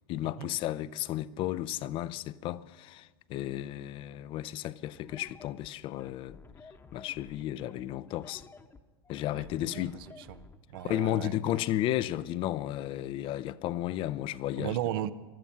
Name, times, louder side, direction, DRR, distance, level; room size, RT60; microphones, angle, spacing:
voice 1, 0.1-6.4 6.9-8.4 9.1-10.0 10.8-14.8, left 13 dB, 45° left, 0.5 m, -33 dB
sound 1, 4.9-10.9, left 4 dB, 20° left, 0.9 m, -52 dB
voice 2, 9.3-10.4 10.7-11.3 14.6-15.1, right 12 dB, 65° right, 0.7 m, -36 dB
15.5 x 13.0 x 5.8 m
hypercardioid pair, 90°, 13 cm